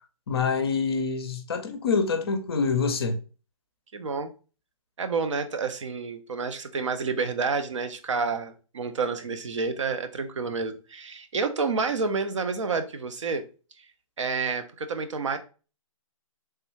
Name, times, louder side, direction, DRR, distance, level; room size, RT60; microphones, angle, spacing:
voice 1, 0.3-3.2, left 5 dB, 45° left, 0.5 m, -26 dB
voice 2, 3.9-4.3 5.0-13.4 14.2-15.4, right 4 dB, 60° right, 0.5 m, -29 dB
3.2 x 2.2 x 3.1 m
figure-of-eight pair, 130°, 18 cm